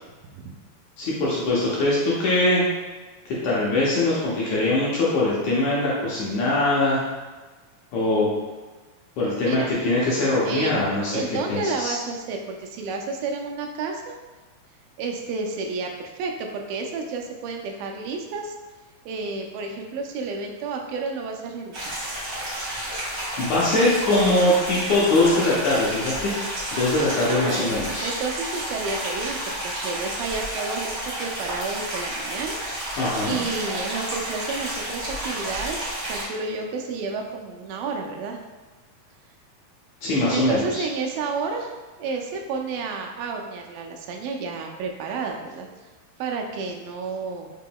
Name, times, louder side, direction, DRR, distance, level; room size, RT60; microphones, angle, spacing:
voice 1, 1.0-2.6 3.2-7.0 7.9-8.3 9.2-11.2 11.5-12.0 23.4-26.3 26.7-28.1 33.0-33.4 40.0-40.8, left 2 dB, 70° left, -7 dB, 1.8 m, -22 dB
voice 2, 10.5-10.8 11.1-14.0 15.0-18.5 19.1-22.0 27.3-27.6 28.0-32.6 32.9-38.4 40.3-41.7 42.0-45.7 46.2-47.5, right 4 dB, 85° right, 2 dB, 2.3 m, -31 dB
sound 1, 21.7-36.2, right 1 dB, 65° right, 0.8 m, -31 dB
5.7 x 3.6 x 2.2 m, 1.3 s
omnidirectional pair, 4.0 m